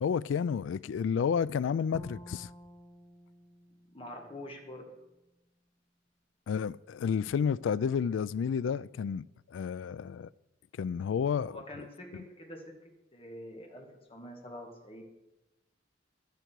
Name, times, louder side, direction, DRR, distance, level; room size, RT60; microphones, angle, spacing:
voice 1, 0.0-2.5 6.5-9.3 9.5-10.3 10.8-11.6 12.1-12.2, left 7 dB, 85° left, 0.3 m, -31 dB
Bowed string instrument, 1.9-5.1, equal, 15° left, 1.1 m, -51 dB
voice 2, 3.9-4.8 11.5-15.0, left 1 dB, 30° left, 2.0 m, -46 dB
11.5 x 10.5 x 4.7 m
head